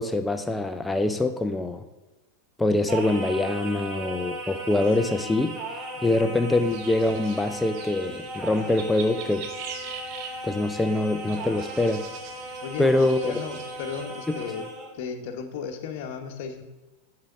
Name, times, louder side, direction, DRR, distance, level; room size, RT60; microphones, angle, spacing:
voice 1, 0.0-1.9 2.6-5.6 6.0-9.5 10.4-12.1 12.8-13.3 14.3-14.4, left 2 dB, 10° left, 8 dB, 0.5 m, -24 dB
Singing, 2.9-14.9, right 1 dB, 30° right, 2.2 m, -37 dB
voice 2, 5.0-5.5 6.0-6.1 12.6-14.6 14.9-16.6, left 6 dB, 60° left, 7 dB, 1.1 m, -35 dB
sound 1, 6.5-14.1, right 6 dB, 55° right, 1.2 m, -43 dB
6.7 x 4.7 x 6.8 m, 1.2 s
hypercardioid pair, 100°, 0 cm